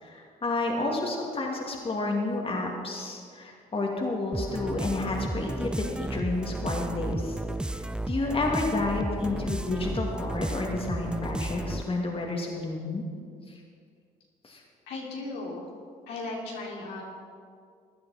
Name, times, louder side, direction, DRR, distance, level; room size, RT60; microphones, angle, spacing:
voice 1, 0.0-7.4 7.6-13.0 13.5-13.6 14.4-14.6, left 2 dB, 30° left, -1 dB, 2.5 m, -30 dB
Techno loop, 4.3-12.0, right 1 dB, 5° right, 0.5 m, -33 dB
voice 2, 14.9-15.6 16.1-17.0, left 2 dB, 75° left, -4 dB, 3.0 m, -36 dB
16.0 x 10.5 x 4.3 m, 2.2 s
supercardioid pair, 60°, 18 cm